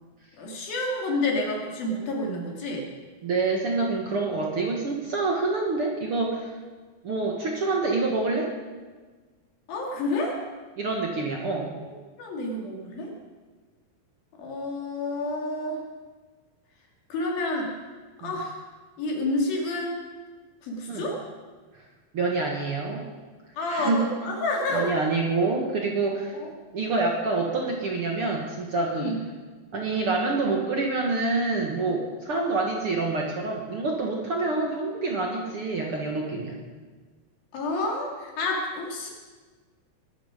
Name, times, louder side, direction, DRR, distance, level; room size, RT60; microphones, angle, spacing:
voice 1, 0.4-2.8 9.7-10.4 12.2-13.1 14.4-15.8 17.1-17.7 18.2-18.6 19.0-20.0 20.6-21.2 23.6-24.9 26.3-26.5 28.9-29.2 37.5-39.1, left 2 dB, 75° left, 0 dB, 4.4 m, -29 dB
voice 2, 3.2-6.5 7.0-8.5 10.8-11.7 18.2-18.3 20.9-21.0 22.1-23.0 23.7-24.0 24.7-26.4 26.7-29.1 29.7-36.6, right 3 dB, 50° right, 0 dB, 1.9 m, -27 dB
20.5 x 12.5 x 5.2 m, 1.4 s
omnidirectional pair, 4.2 m